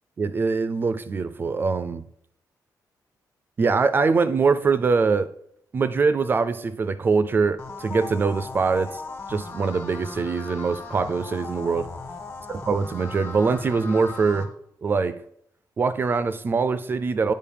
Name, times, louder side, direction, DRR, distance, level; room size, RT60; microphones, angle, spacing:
voice 1, 0.2-2.0 3.6-5.3 5.7-9.0 9.3-11.9 12.5-14.5 14.8-15.2 15.8-17.3, right 4 dB, 30° right, 13 dB, 0.4 m, -23 dB
sound 1, 7.6-14.4, left 3 dB, 35° left, 1.3 m, -38 dB
8.7 x 5.0 x 5.1 m, 0.72 s
wide cardioid pair, 170°, 7 cm